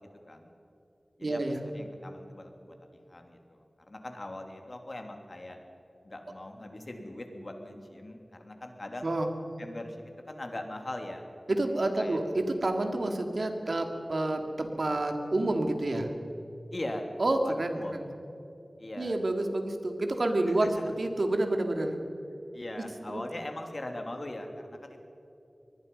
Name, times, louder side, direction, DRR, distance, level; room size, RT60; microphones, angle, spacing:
voice 1, 1.2-1.7 9.0-9.3 11.5-16.1 17.2-18.1 19.0-22.0 23.1-23.2, right 2 dB, 65° right, 5 dB, 2.5 m, -29 dB
voice 2, 1.7-2.7 3.1-3.6 3.9-5.6 6.0-9.1 9.6-10.0 10.2-11.2 12.0-12.2 16.7-17.1 17.4-18.1 18.8-19.2 20.8-20.9 22.5-25.0, left 1 dB, 45° left, 4 dB, 2.9 m, -40 dB
24.0 x 20.0 x 5.5 m, 2.9 s
wide cardioid pair, 70°, 0 cm